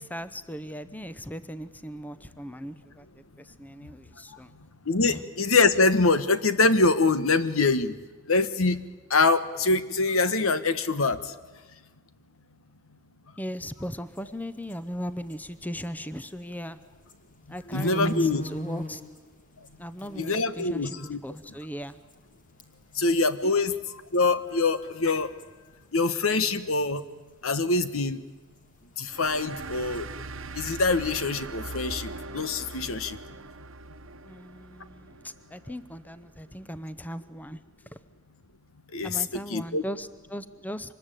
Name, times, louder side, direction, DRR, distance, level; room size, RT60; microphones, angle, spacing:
voice 1, 0.0-4.5 5.1-5.2 13.4-16.8 17.5-19.0 19.8-22.0 23.4-23.7 34.2-37.6 37.9-38.0 39.0-40.9, equal, 10° left, 13 dB, 0.7 m, -38 dB
voice 2, 4.9-7.9 8.3-8.8 9.1-11.2 17.7-18.4 20.2-21.2 23.0-23.7 24.1-25.3 25.9-27.0 27.4-28.2 29.0-30.0 30.6-33.2 38.9-39.2 39.5-39.8, left 3 dB, 75° left, 12 dB, 1.3 m, -24 dB
sound 1, 14.0-16.6 16.9-22.3 22.6-23.0 23.2-23.3 23.6-26.2 26.4-30.0, right 1 dB, 40° left, 2.5 m, -39 dB
sound 2, 29.1-36.2, right 3 dB, 65° right, 1.1 m, -41 dB
25.0 x 20.5 x 9.1 m, 1.3 s
head